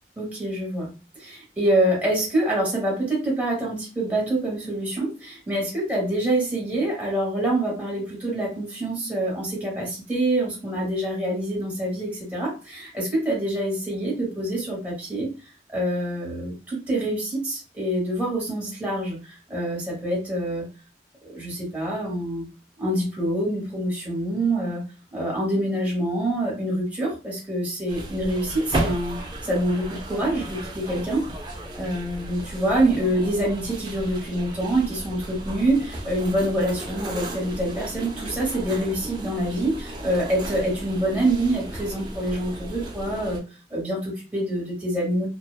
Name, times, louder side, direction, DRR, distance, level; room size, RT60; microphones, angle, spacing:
voice 1, 0.2-0.9 1.2-15.3 15.7-20.7 21.3-22.5 22.8-24.8 25.1-31.3 31.7-43.4 43.7-45.3, right 1 dB, 10° right, -4 dB, 1.0 m, -26 dB
sound 1, 27.9-43.4, right 1 dB, 25° right, 0.4 m, -34 dB
2.6 x 2.3 x 2.3 m, 0.33 s
head